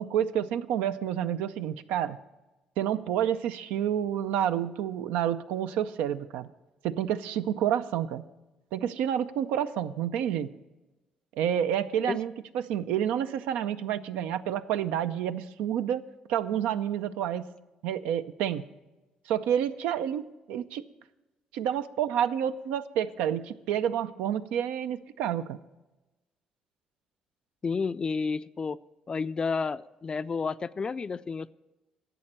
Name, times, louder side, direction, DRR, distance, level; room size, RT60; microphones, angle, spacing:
voice 1, 0.0-2.2 2.8-6.5 6.8-8.2 8.7-10.5 11.4-16.0 16.3-17.5 17.8-18.7 19.3-20.8 21.5-25.6, right 10 dB, 90° right, 11 dB, 0.5 m, -29 dB
voice 2, 27.6-28.8 29.1-31.5, left 5 dB, 35° left, 14 dB, 0.3 m, -31 dB
11.0 x 7.9 x 7.3 m, 1.1 s
supercardioid pair, 75°, 3 cm